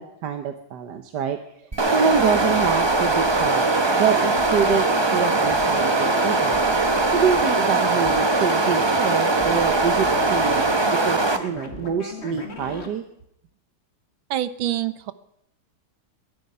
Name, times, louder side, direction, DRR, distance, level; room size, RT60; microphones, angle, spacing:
voice 1, 0.0-6.6 7.1-13.0, right 7 dB, 65° right, 7 dB, 1.5 m, -26 dB
sound 1, 1.7-11.4, right 3 dB, 35° right, 0.4 m, -21 dB
sound 2, 2.1-12.9, left 2 dB, 35° left, 2.1 m, -38 dB
voice 2, 14.3-15.1, right 12 dB, 90° right, 13 dB, 1.7 m, -26 dB
21.5 x 11.5 x 5.6 m, 0.77 s
omnidirectional pair, 2.1 m